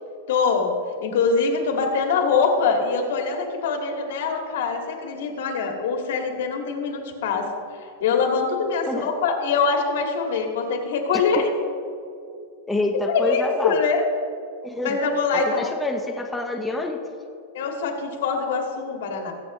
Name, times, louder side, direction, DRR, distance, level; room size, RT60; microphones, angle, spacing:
voice 1, 0.3-0.7 1.0-7.5 8.0-11.4 13.1-14.0 14.8-15.7 17.5-19.3, left 5 dB, 70° left, 2 dB, 2.0 m, -23 dB
voice 2, 12.7-13.8 14.6-15.0 15.3-17.0, left 2 dB, 5° left, 1 dB, 0.6 m, -27 dB
22.5 x 8.2 x 3.1 m, 2.5 s
supercardioid pair, 165°, 0 cm